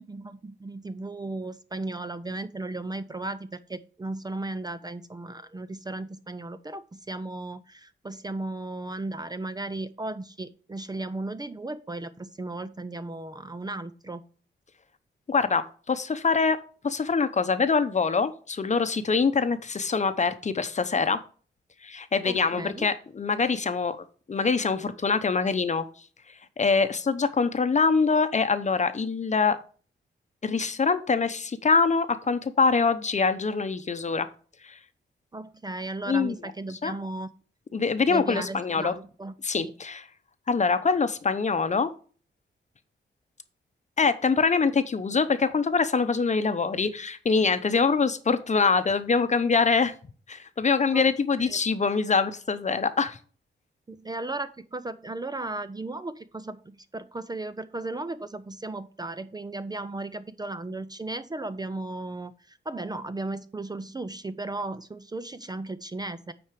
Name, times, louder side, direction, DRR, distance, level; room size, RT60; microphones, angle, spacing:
voice 1, 0.0-14.2 22.2-22.9 35.3-37.3 38.1-39.3 39.6-39.7 50.9-51.1 51.4-51.6 53.9-66.3, right 2 dB, 20° right, 13 dB, 0.5 m, -35 dB
voice 2, 15.3-16.6 16.8-21.2 21.8-24.0 24.3-25.9 26.6-29.6 30.4-34.3 34.6-34.8 36.1-36.4 36.8-36.9 37.7-38.9 39.4-40.0 40.5-41.9 44.0-49.9 50.3-53.2, left 4 dB, 35° left, 11 dB, 0.8 m, -24 dB
9.0 x 4.4 x 4.9 m, 0.41 s
cardioid pair, 80°, 19 cm